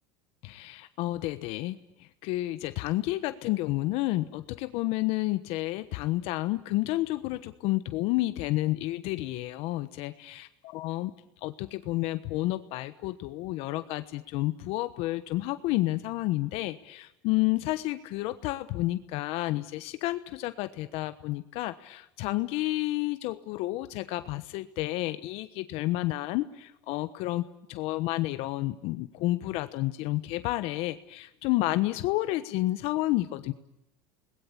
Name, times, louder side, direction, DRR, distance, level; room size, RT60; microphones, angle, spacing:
voice 1, 0.4-1.8 2.2-10.5 10.7-11.1 11.4-27.4 27.7-33.5, left 17 dB, 55° left, 12 dB, 1.2 m, -30 dB
28.5 x 20.5 x 8.7 m, 0.86 s
supercardioid pair, 145°, 12 cm